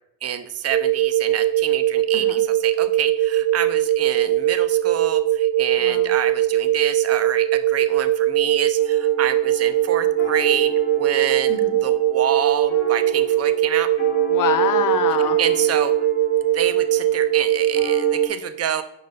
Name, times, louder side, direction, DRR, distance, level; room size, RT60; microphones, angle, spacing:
voice 1, 0.2-13.9 15.4-15.9 16.5-18.8, right 9 dB, 35° right, 11 dB, 0.4 m, -27 dB
sound 1, 0.7-18.3, right 12 dB, 80° right, 0.7 m, -20 dB
voice 2, 5.8-6.1 11.5-11.8 14.3-15.4, left 8 dB, 40° left, 9 dB, 0.7 m, -25 dB
sound 2, 8.8-18.3, left 3 dB, 85° left, 1.5 m, -36 dB
5.1 x 4.0 x 2.5 m, 0.78 s
hypercardioid pair, 55°, 50 cm